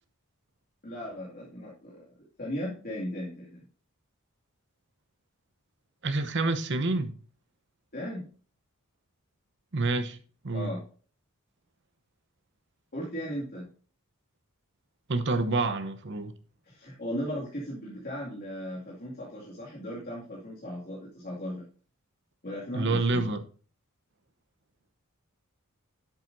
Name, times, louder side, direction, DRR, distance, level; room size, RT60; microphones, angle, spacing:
voice 1, 0.8-2.0 2.4-3.6 7.9-8.2 10.5-10.8 12.9-13.7 16.6-21.6 22.4-23.3, equal, 45° left, 2.3 m, -37 dB
voice 2, 6.0-7.1 9.7-10.2 10.4-10.7 15.1-16.3 22.7-23.4, right 3 dB, 55° right, 0.9 m, -27 dB
10.5 x 7.6 x 2.7 m
head